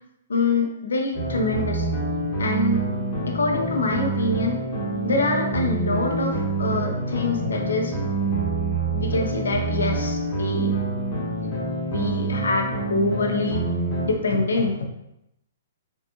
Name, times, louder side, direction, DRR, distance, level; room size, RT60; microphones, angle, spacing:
voice 1, 0.3-1.9 2.4-2.8 3.3-4.6 5.0-8.0 8.9-10.8 11.4-11.5 11.9-13.6 14.0-14.8, left 3 dB, 90° left, 2 dB, 0.6 m, -25 dB
sound 1, 1.1-14.1, right 3 dB, 40° left, 1.1 m, -26 dB
3.6 x 2.4 x 2.8 m, 0.83 s
hypercardioid pair, 140°, 0 cm